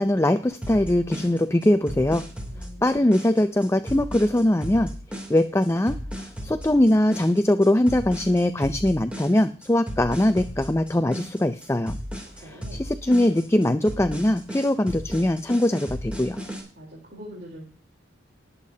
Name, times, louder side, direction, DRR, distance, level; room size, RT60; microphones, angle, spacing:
voice 1, 0.0-2.2 2.8-4.9 5.3-11.9 12.4-16.4, left 1 dB, 15° left, 10 dB, 0.5 m, -22 dB
sound 1, 0.6-16.6, equal, 5° right, 3.0 m, -35 dB
voice 2, 2.5-3.1 12.3-12.8 16.8-17.7, equal, 55° right, -2 dB, 3.7 m, -43 dB
20.0 x 8.3 x 2.8 m, 0.39 s
head